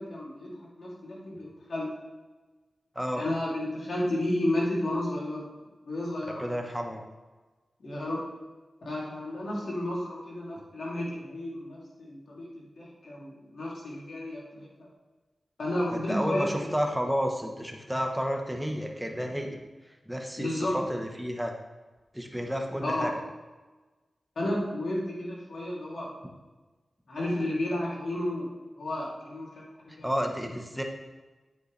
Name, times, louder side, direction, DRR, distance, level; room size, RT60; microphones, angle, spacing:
voice 1, 0.0-1.9 3.1-5.4 5.8-6.4 7.8-8.2 8.8-14.9 15.6-16.5 20.4-20.7 22.8-23.1 24.3-26.1 27.1-28.5 28.8-30.2, left 1 dB, 70° left, -5 dB, 3.0 m, -32 dB
voice 2, 6.4-7.0 15.9-19.6 20.1-21.5 22.1-23.1 29.9-30.8, equal, 5° right, 2 dB, 1.1 m, -31 dB
9.2 x 8.0 x 3.3 m, 1.2 s
wide cardioid pair, 100°, 0 cm